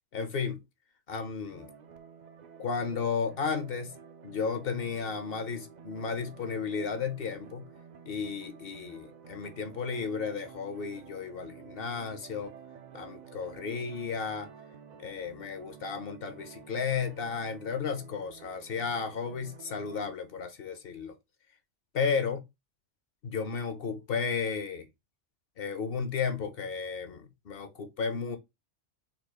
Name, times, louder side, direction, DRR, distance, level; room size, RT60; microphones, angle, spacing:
voice 1, 0.1-0.6 1.1-1.7 2.6-3.9 4.2-7.6 8.1-12.5 12.9-14.5 15.0-21.1 21.9-22.4 23.2-24.9 25.6-28.4, left 5 dB, 60° left, 0.9 m, -33 dB
sound 1, 1.5-20.2, right 7 dB, 50° right, 0.5 m, -51 dB
4.1 x 2.4 x 4.6 m
omnidirectional pair, 1.2 m